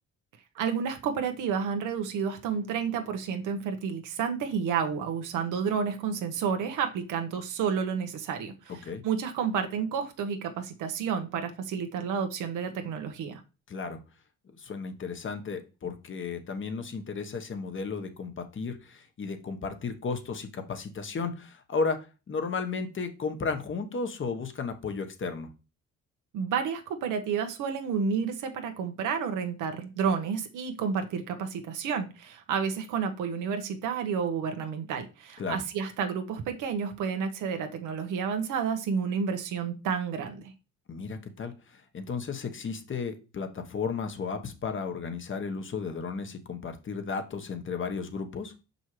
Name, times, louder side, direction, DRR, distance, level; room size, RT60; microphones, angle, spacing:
voice 1, 0.5-8.7 9.0-13.4 26.3-40.5, right 6 dB, 85° right, 6 dB, 1.0 m, -30 dB
voice 2, 13.7-14.0 14.6-25.5 35.4-35.6 40.9-48.5, left 5 dB, 40° left, 7 dB, 1.1 m, -34 dB
5.8 x 5.3 x 3.1 m, 0.31 s
cardioid pair, 90°, 30 cm